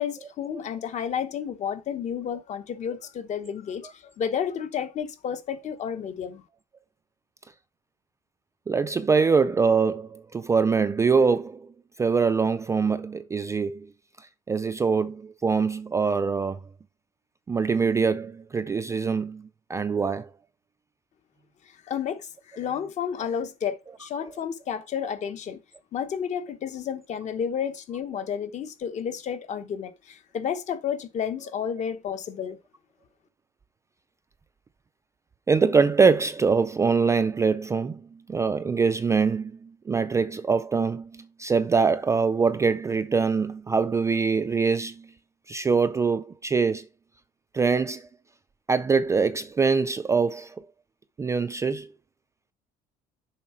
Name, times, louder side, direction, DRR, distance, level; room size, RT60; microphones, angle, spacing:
voice 1, 0.0-6.4 21.9-25.6 25.9-32.6, left 8 dB, 40° left, 1.1 m, -31 dB
voice 2, 8.7-11.7 12.0-13.9 14.2-16.6 17.5-20.3 35.5-45.1 45.5-46.9 47.5-48.1 48.7-50.7 51.2-51.9, right 5 dB, 15° right, 0.3 m, -24 dB
7.1 x 5.6 x 4.4 m
cardioid pair, 160°, 18 cm